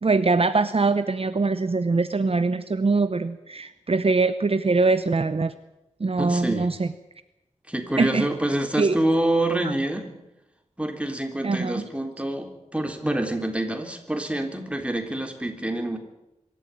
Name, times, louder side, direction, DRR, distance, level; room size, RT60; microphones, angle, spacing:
voice 1, 0.0-5.5 6.0-6.9 8.0-8.3 8.8-9.0 11.4-11.8, right 3 dB, 50° right, 11 dB, 0.8 m, -22 dB
voice 2, 6.2-6.7 7.7-10.1 10.8-16.0, right 1 dB, 10° right, 4 dB, 3.6 m, -26 dB
25.0 x 13.5 x 9.2 m, 0.94 s
wide cardioid pair, 80°, 12 cm